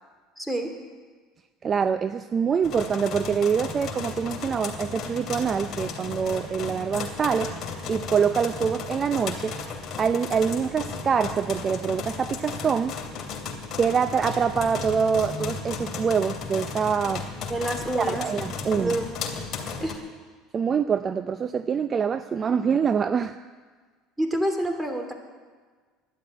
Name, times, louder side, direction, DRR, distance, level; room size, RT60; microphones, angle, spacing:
voice 1, 0.4-0.7 17.5-18.2 18.7-19.0 19.8-20.0 24.2-25.1, right 1 dB, 5° right, 4 dB, 3.0 m, -27 dB
voice 2, 1.6-7.5 7.9-9.5 10.0-12.9 13.8-17.2 17.9-18.9 20.5-23.3, right 6 dB, 35° right, 11 dB, 0.6 m, -25 dB
sound 1, 2.6-20.0, left 5 dB, 45° left, 2.9 m, -35 dB
12.5 x 11.0 x 9.1 m, 1.5 s
hypercardioid pair, 80°, 0 cm